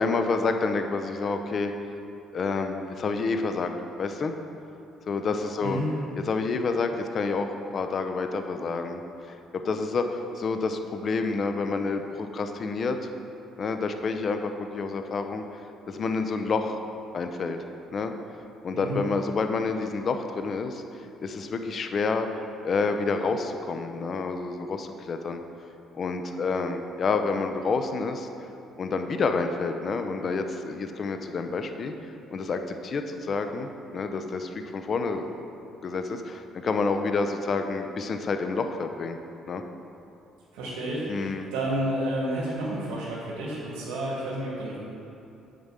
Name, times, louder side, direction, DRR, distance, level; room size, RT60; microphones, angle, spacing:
voice 1, 0.0-1.7 2.3-3.7 4.0-4.3 5.1-5.8 6.3-9.0 9.3-13.0 13.6-15.4 15.9-16.8 17.1-17.6 17.9-18.1 18.6-20.8 21.2-22.3 22.6-25.4 25.9-28.3 28.8-31.9 32.3-35.5 35.8-39.2 39.5-39.6 41.1-41.5, left 4 dB, 45° left, 6 dB, 0.7 m, -28 dB
voice 2, 40.5-44.8, right 1 dB, 85° right, -7 dB, 2.2 m, -30 dB
7.5 x 5.2 x 7.4 m, 2.8 s
cardioid pair, 95°, 0 cm